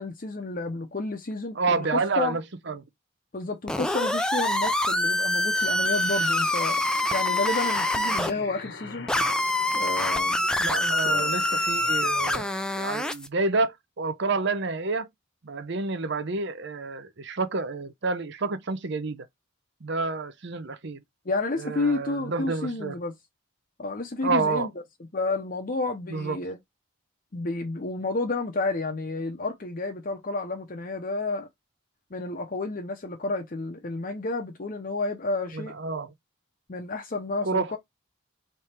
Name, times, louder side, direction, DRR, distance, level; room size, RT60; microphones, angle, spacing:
voice 1, 0.0-2.4 3.3-6.8 7.1-9.1 9.7-11.3 21.3-23.1 23.8-24.7 25.1-26.6 27.3-31.5 32.1-35.7 36.7-37.8, left 3 dB, 40° left, 0.7 m, -31 dB
voice 2, 1.5-2.8 10.6-15.1 15.4-19.3 19.8-21.0 21.6-23.0 24.2-24.7 26.1-26.4 35.5-36.1 37.4-37.7, right 3 dB, 55° right, 0.6 m, -29 dB
sound 1, 3.7-8.3 9.1-13.3, left 1 dB, 5° left, 0.3 m, -25 dB
sound 2, 5.5-12.4, left 4 dB, 55° left, 0.9 m, -43 dB
3.3 x 3.3 x 4.3 m
head